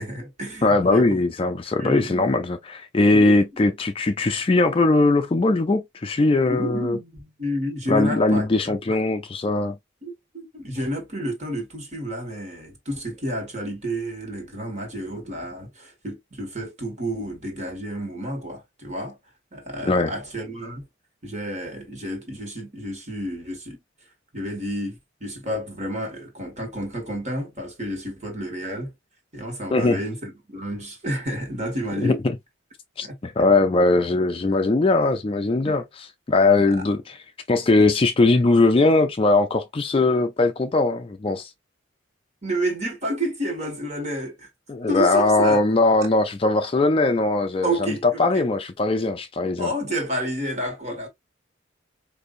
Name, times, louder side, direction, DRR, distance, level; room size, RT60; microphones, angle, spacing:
voice 1, 0.0-1.1 1.8-2.2 3.1-3.3 6.5-9.0 10.0-19.2 19.5-20.9 21.2-23.8 24.3-28.9 29.3-32.2 33.0-33.2 35.6-35.8 42.4-44.5 44.9-45.6 47.6-48.5 49.6-51.1, right 1 dB, 35° right, 1.4 m, -30 dB
voice 2, 0.6-7.0 7.9-9.8 19.8-20.1 29.7-30.0 32.0-32.2 33.0-35.8 36.3-37.2 37.5-41.5 44.7-49.7, left 2 dB, 25° left, 0.3 m, -20 dB
4.8 x 2.6 x 2.5 m
head